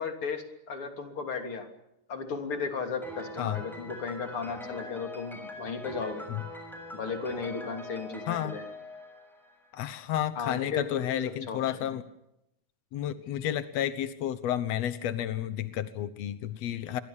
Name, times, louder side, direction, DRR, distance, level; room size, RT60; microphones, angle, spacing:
voice 1, 0.0-1.7 2.1-6.3 6.9-8.6 10.4-11.9, left 5 dB, 35° left, 5 dB, 3.5 m, -35 dB
Piano, 3.0-9.8, left 1 dB, ahead, 6.9 m, -43 dB
voice 2, 9.7-12.0 12.9-17.0, left 11 dB, 80° left, 12 dB, 1.5 m, -31 dB
27.5 x 23.5 x 7.2 m, 0.84 s
omnidirectional pair, 4.6 m